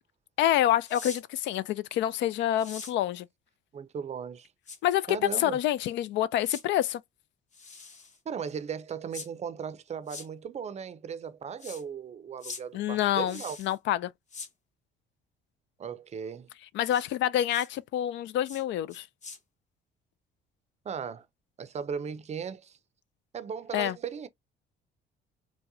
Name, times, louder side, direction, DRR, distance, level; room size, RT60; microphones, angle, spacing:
voice 1, 0.4-3.3 4.8-7.0 12.7-14.1 16.7-19.1 23.7-24.0, left 12 dB, 75° left, 0.4 m, -27 dB
sound 1, 0.8-1.2 2.6-2.9 4.7-4.8 6.4-6.6 7.5-8.2 9.1-9.3 10.1-10.3 11.6-11.8 12.4-12.6 13.3-13.7 14.3-14.5 16.9-17.1 17.5-17.7 18.5-18.6 18.9-19.4, left 4 dB, 40° left, 1.1 m, -42 dB
voice 2, 3.7-4.5 5.1-5.6 8.3-13.6 15.8-16.5 20.8-21.3 21.6-22.8 23.3-24.3, right 7 dB, 35° right, 0.5 m, -37 dB
4.5 x 2.1 x 2.6 m
cardioid pair, 100°, 19 cm